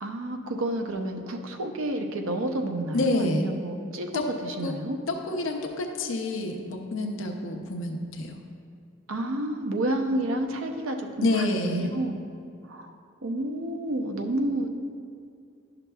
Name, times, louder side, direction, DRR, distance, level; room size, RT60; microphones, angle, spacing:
voice 1, 0.0-5.0 9.1-12.2 12.7-12.9 13.2-14.7, right 1 dB, 75° right, 4 dB, 0.6 m, -30 dB
voice 2, 2.9-3.5 4.1-4.2 4.6-4.7 5.1-8.3 11.2-12.0, left 2 dB, 65° left, 2 dB, 0.6 m, -28 dB
11.0 x 5.8 x 2.3 m, 2.3 s
head